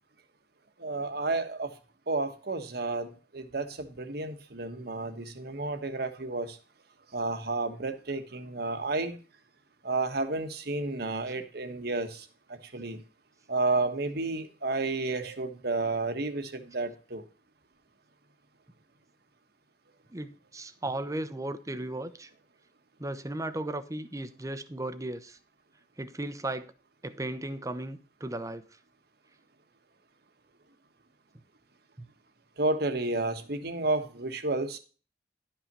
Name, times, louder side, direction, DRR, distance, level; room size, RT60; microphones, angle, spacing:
voice 1, 0.8-1.7 2.1-6.6 7.1-9.2 9.8-13.0 13.5-17.2 32.6-34.8, right 3 dB, 60° right, 1.4 m, -31 dB
voice 2, 20.1-22.3 23.0-25.4 26.0-26.7 27.0-28.6, right 1 dB, 20° right, 0.8 m, -36 dB
11.5 x 5.8 x 5.3 m
head